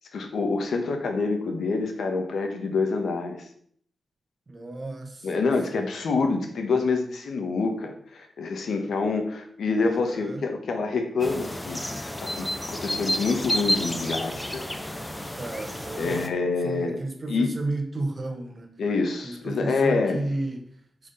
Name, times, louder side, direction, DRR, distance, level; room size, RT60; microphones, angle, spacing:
voice 1, 0.1-3.4 5.2-14.6 16.0-17.0 17.3-17.5 18.8-20.2, left 4 dB, 75° left, 5 dB, 1.6 m, -27 dB
voice 2, 4.5-5.4 5.7-6.0 9.9-10.4 15.4-16.3 16.6-18.8 19.2-20.6, right 2 dB, 30° right, 4 dB, 1.5 m, -33 dB
sound 1, 11.2-16.3, left 1 dB, 10° left, 0.8 m, -30 dB
9.4 x 5.0 x 5.7 m, 0.63 s
wide cardioid pair, 170°, 0 cm